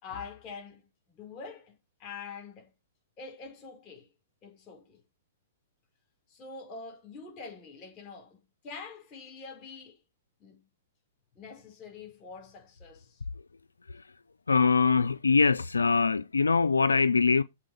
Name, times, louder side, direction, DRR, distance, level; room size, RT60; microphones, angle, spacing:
voice 1, 0.0-1.7 2.0-2.7 3.2-4.1 4.4-5.0 6.3-8.4 8.6-10.0 10.4-10.6 11.3-13.2, left 5 dB, 35° left, 4.8 m, -45 dB
voice 2, 14.5-17.4, left 4 dB, 85° left, 0.4 m, -23 dB
7.5 x 4.2 x 5.5 m
hypercardioid pair, 115°, 0 cm